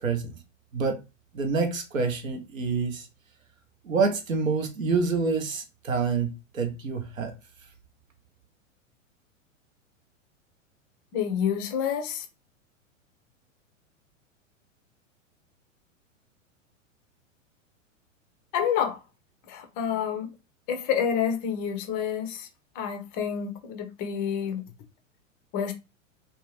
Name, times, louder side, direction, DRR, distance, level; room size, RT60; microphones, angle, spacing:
voice 1, 0.0-0.3 0.7-1.0 1.3-3.1 3.8-7.3, right 4 dB, 90° right, 0.8 m, -27 dB
voice 2, 11.1-12.3 18.5-19.0 19.5-20.3 20.7-22.5 22.8-24.6 25.5-25.7, left 8 dB, 25° left, 0.3 m, -28 dB
2.5 x 2.1 x 3.0 m
hypercardioid pair, 105°, 39 cm